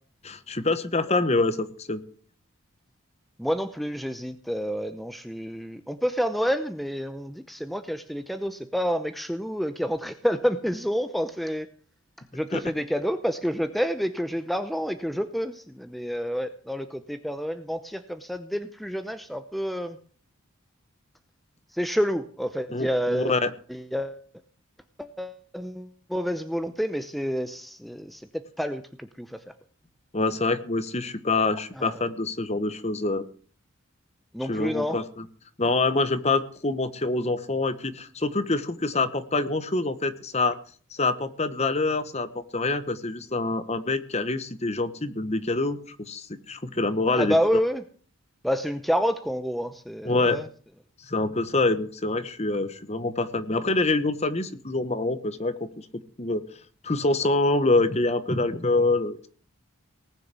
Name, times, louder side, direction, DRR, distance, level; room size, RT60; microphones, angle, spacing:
voice 1, 0.2-2.0 12.5-12.6 22.7-23.5 30.1-33.2 34.4-35.2 35.6-40.6 40.9-47.4 50.0-50.4 51.1-55.7 56.2-56.4 56.8-59.3, left 2 dB, 30° left, 12 dB, 1.1 m, -26 dB
voice 2, 3.4-11.7 12.3-20.0 21.7-23.3 23.7-24.2 25.0-28.3 28.6-29.4 31.8-32.0 34.3-35.0 47.1-47.8 48.4-50.5, equal, ahead, 9 dB, 0.7 m, -29 dB
19.0 x 6.5 x 8.2 m, 0.44 s
head